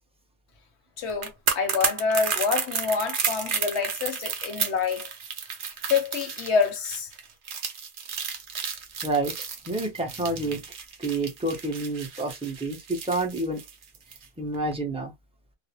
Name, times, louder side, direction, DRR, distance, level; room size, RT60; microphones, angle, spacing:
voice 1, 1.0-5.1 5.8-7.1, left 5 dB, 60° left, 0.8 m, -27 dB
sound 1, 1.1-14.2 14.5-14.7, right 6 dB, 75° right, 0.4 m, -32 dB
voice 2, 9.0-9.3 9.7-10.6 11.0-13.6 14.4-15.1, right 2 dB, 10° right, 0.4 m, -28 dB
2.5 x 2.0 x 2.8 m
omnidirectional pair, 1.5 m